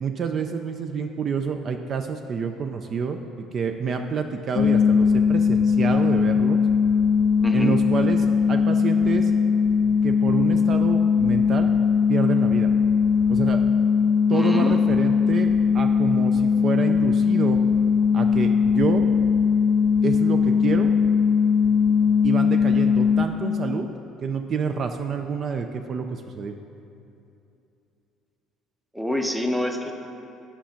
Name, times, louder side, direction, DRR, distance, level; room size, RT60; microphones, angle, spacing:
voice 1, 0.0-3.2 3.5-6.6 7.5-9.3 10.0-11.7 12.1-12.7 13.3-13.6 14.3-17.6 18.1-19.0 20.0-20.9 22.2-23.9 24.2-26.5, right 6 dB, 40° right, 6 dB, 0.4 m, -28 dB
sound 1, 4.6-23.3, left 6 dB, 40° left, 0.5 m, -20 dB
voice 2, 7.4-7.8 14.3-14.8 28.9-29.9, equal, ahead, 4 dB, 0.7 m, -26 dB
8.9 x 5.6 x 5.7 m, 2.7 s
cardioid pair, 130°, 0 cm